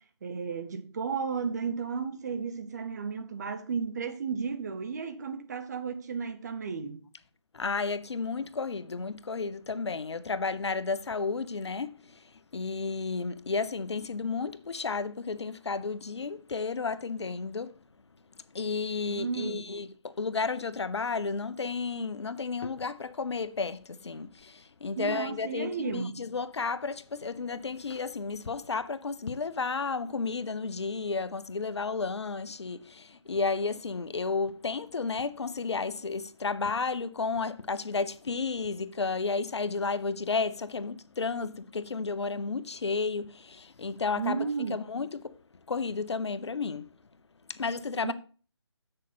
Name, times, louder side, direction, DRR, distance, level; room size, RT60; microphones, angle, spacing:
voice 1, 0.0-7.0 19.1-19.6 25.0-26.2 44.2-44.8 48.0-48.1, right 5 dB, 35° right, 0.8 m, -33 dB
voice 2, 7.5-17.8 18.3-45.4 45.7-46.9 47.5-48.1, left 4 dB, 65° left, 0.7 m, -32 dB
7.3 x 6.5 x 4.2 m
figure-of-eight pair, 155°, 15 cm